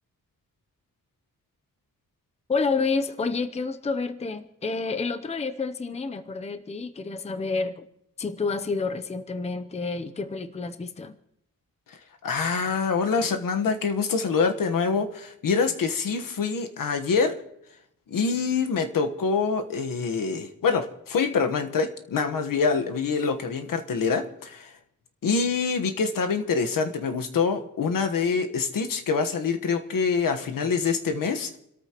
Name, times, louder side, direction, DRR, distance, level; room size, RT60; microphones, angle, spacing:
voice 1, 2.5-7.9 8.2-11.1, left 4 dB, 20° left, 9 dB, 0.6 m, -29 dB
voice 2, 11.9-17.4 18.1-24.8 25.2-31.6, left 5 dB, 70° left, 6 dB, 1.3 m, -25 dB
29.0 x 13.5 x 3.0 m, 0.79 s
wide cardioid pair, 145°, 34 cm